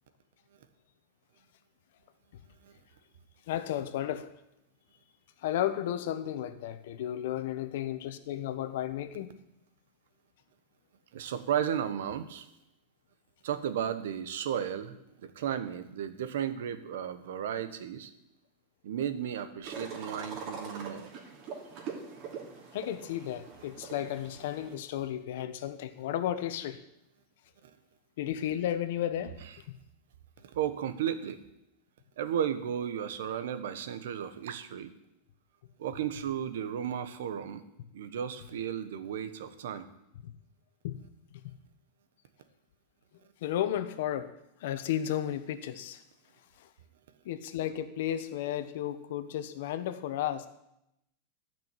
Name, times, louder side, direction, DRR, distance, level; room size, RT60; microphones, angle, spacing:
voice 1, 3.5-4.3 5.4-9.3 22.7-26.8 28.2-29.3 29.7-29.8 40.2-40.3 40.8-41.0 41.4-41.5 43.4-44.3 44.6-46.0 47.2-50.5, left 11 dB, 65° left, 11 dB, 1.2 m, -33 dB
voice 2, 11.1-12.5 13.4-18.1 18.8-21.1 30.4-31.4 32.2-34.9 35.8-37.6 37.9-39.9, right 9 dB, 80° right, 11 dB, 1.3 m, -34 dB
sound 1, 19.6-24.7, right 5 dB, 40° right, 2.9 m, -43 dB
13.5 x 6.1 x 9.2 m, 0.83 s
supercardioid pair, 165°, 0 cm